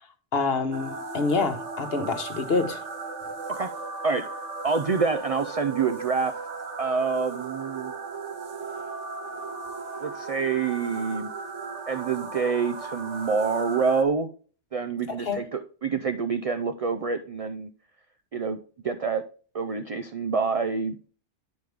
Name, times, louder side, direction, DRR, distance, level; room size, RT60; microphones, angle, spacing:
voice 1, 0.3-2.8 15.1-15.4, left 4 dB, 60° left, 7 dB, 1.2 m, -27 dB
sound 1, 0.7-14.0, right 4 dB, 85° right, 1.3 m, -36 dB
voice 2, 4.6-6.3 6.8-7.9 10.0-11.3 11.9-14.3 14.7-17.7 18.3-18.6 18.8-19.2 19.5-21.1, right 5 dB, 55° right, 8 dB, 0.4 m, -27 dB
9.3 x 5.3 x 3.3 m, 0.40 s
omnidirectional pair, 1.2 m